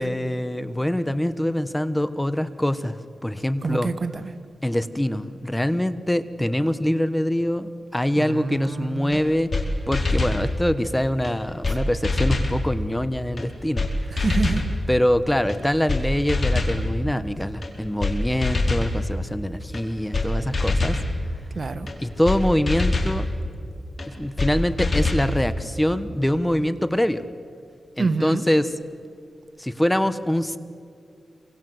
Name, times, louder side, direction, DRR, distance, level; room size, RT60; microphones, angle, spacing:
voice 1, 0.0-3.0 3.2-3.9 4.6-9.5 9.9-13.9 14.9-21.0 22.0-23.3 24.1-27.2 28.0-28.7 29.6-30.6, left 1 dB, 10° left, 13 dB, 1.1 m, -24 dB
voice 2, 3.6-4.3 8.2-9.2 14.1-14.7 21.5-21.9 28.0-28.5, right 3 dB, 55° right, 10 dB, 1.6 m, -27 dB
sound 1, 9.1-9.2 9.5-9.6 9.9-10.4 11.2-11.3 11.6-11.8 12.0-12.5 13.4-13.5 13.8-13.9 14.2-14.7 15.5-15.6 15.9-16.0 16.3-16.8 17.6-17.7 18.0-18.1 18.4-18.9 19.7-19.8 20.1-20.3 20.5-21.0 21.9-22.0 22.3-22.4 22.7-23.1 24.0-24.1 24.4-24.5 24.8-25.3, left 3 dB, 45° left, 4.7 m, -23 dB
27.0 x 24.5 x 7.9 m, 2.3 s
cardioid pair, 70°, 0 cm